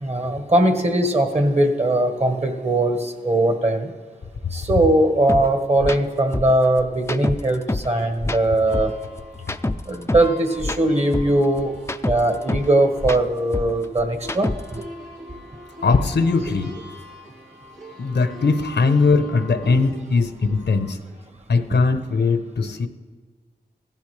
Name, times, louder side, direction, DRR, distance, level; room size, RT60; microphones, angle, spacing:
voice 1, 0.0-3.9 4.5-8.9 9.9-11.7 12.1-14.5 19.6-19.8, right 1 dB, 35° right, 5 dB, 1.4 m, -20 dB
sound 1, 5.3-5.4 5.8-6.0 6.3-7.9 8.2-10.3 10.6-12.7 13.0-14.8, left 2 dB, 15° left, 0.4 m, -27 dB
sound 2, 8.6-20.9, equal, 85° right, 2.1 m, -42 dB
voice 2, 15.8-16.8 18.0-21.0 21.5-22.9, left 4 dB, 75° left, 9 dB, 0.8 m, -20 dB
15.5 x 12.0 x 3.3 m, 1.4 s
cardioid pair, 50°, 18 cm